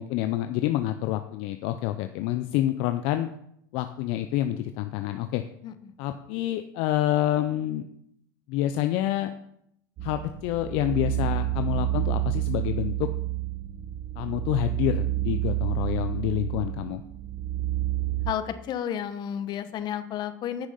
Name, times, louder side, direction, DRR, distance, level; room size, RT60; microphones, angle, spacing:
voice 1, 0.0-3.3 3.7-5.4 6.0-7.8 8.5-9.3 10.0-13.1 14.2-17.0, left 13 dB, 60° left, 8 dB, 0.6 m, -27 dB
voice 2, 5.6-5.9 18.2-20.7, left 10 dB, 40° left, 11 dB, 1.0 m, -32 dB
sound 1, 10.0-18.3, right 15 dB, 45° right, 0.9 m, -29 dB
9.9 x 6.2 x 5.6 m, 0.75 s
supercardioid pair, 110°, 11 cm